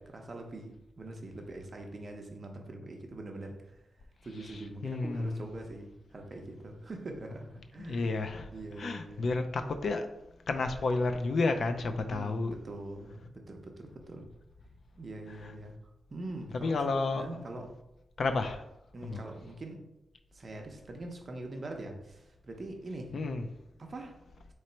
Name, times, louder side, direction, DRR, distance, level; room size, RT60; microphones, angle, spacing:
voice 1, 0.0-3.8 4.2-8.1 8.5-9.2 12.0-14.3 15.0-15.7 16.1-16.8 17.1-17.7 18.9-19.9 20.3-23.1 23.8-24.1, right 2 dB, 35° right, 0.6 m, -43 dB
voice 2, 4.5-5.4 7.8-8.5 8.8-10.1 10.5-12.5 15.4-15.5 16.5-17.3 18.2-18.6 19.0-19.2 23.1-23.4, left 3 dB, 55° left, 0.4 m, -31 dB
3.8 x 3.1 x 4.4 m
wide cardioid pair, 155°, 0 cm